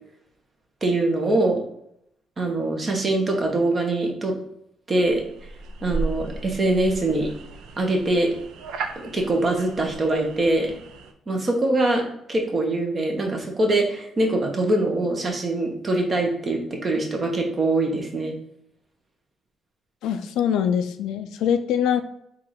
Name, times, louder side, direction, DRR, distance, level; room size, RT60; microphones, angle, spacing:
voice 1, 0.8-1.6 2.4-4.3 4.9-5.2 5.8-7.3 7.8-8.3 9.0-10.7 11.3-12.0 12.3-18.4, right 2 dB, 35° right, 2 dB, 1.0 m, -23 dB
sound 1, 5.0-11.1, right 3 dB, 85° right, 0.4 m, -35 dB
voice 2, 20.0-22.0, left 8 dB, 85° left, 9 dB, 0.4 m, -23 dB
3.8 x 2.5 x 4.6 m, 0.74 s
cardioid pair, 90°, 0 cm